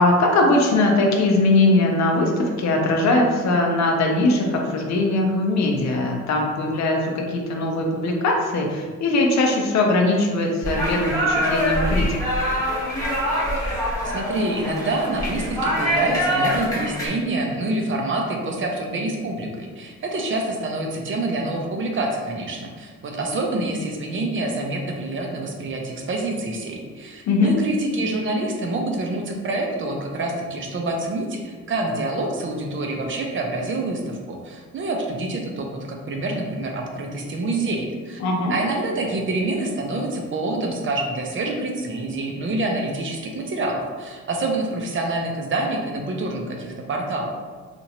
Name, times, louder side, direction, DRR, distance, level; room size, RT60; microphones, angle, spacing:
voice 1, 0.0-12.2 27.3-27.6 38.2-38.5, left 2 dB, 65° left, 1 dB, 0.6 m, -20 dB
sound 1, 10.6-17.1, equal, 10° left, 1.1 m, -24 dB
voice 2, 14.0-38.2 38.5-47.2, right 2 dB, 40° right, 1 dB, 0.6 m, -26 dB
2.9 x 2.5 x 2.8 m, 1.5 s
cardioid pair, 90°, 30 cm